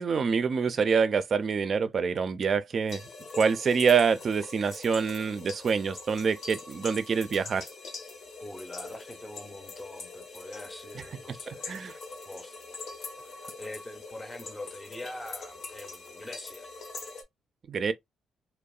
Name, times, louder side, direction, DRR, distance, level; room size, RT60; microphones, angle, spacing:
voice 1, 0.0-3.0 3.4-7.7 11.5-11.9 17.7-17.9, right 6 dB, 50° right, 0.4 m, -26 dB
sound 1, 2.9-17.2, left 3 dB, 60° left, 0.8 m, -43 dB
voice 2, 8.4-11.8 12.3-12.6 13.6-16.7, left 1 dB, 15° left, 0.6 m, -43 dB
2.7 x 2.0 x 2.3 m
cardioid pair, 90°, 0 cm